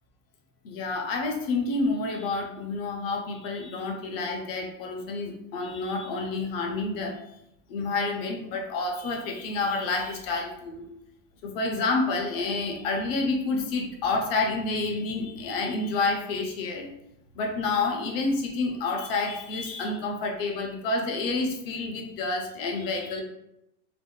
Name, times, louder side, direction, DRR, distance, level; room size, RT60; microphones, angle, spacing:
voice 1, 0.6-7.1 7.7-10.9 11.4-16.9 17.4-23.2, left 3 dB, 45° left, 1 dB, 0.6 m, -29 dB
3.4 x 2.1 x 2.3 m, 0.83 s
supercardioid pair, 170°, 43 cm